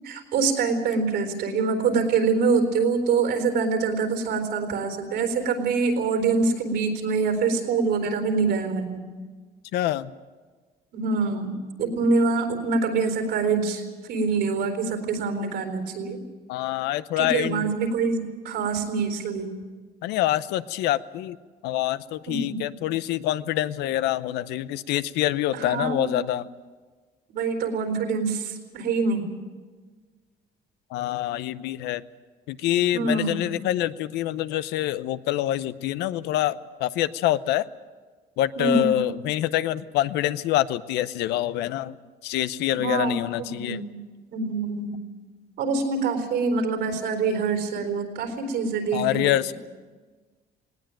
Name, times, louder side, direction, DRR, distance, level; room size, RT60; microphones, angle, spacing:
voice 1, 0.0-9.0 10.9-16.2 17.2-19.5 22.3-22.6 25.5-26.1 27.3-29.3 32.9-33.6 38.6-39.0 42.7-44.0 44.3-45.0 45.6-49.5, right 4 dB, 80° right, 5 dB, 4.1 m, -25 dB
voice 2, 9.7-10.1 16.5-17.7 20.0-21.4 21.6-26.5 30.9-32.0 32.5-37.6 38.4-42.0 42.2-43.8 48.9-49.5, left 13 dB, 90° left, 14 dB, 0.7 m, -26 dB
19.0 x 18.0 x 8.9 m, 1.4 s
cardioid pair, 110°, 17 cm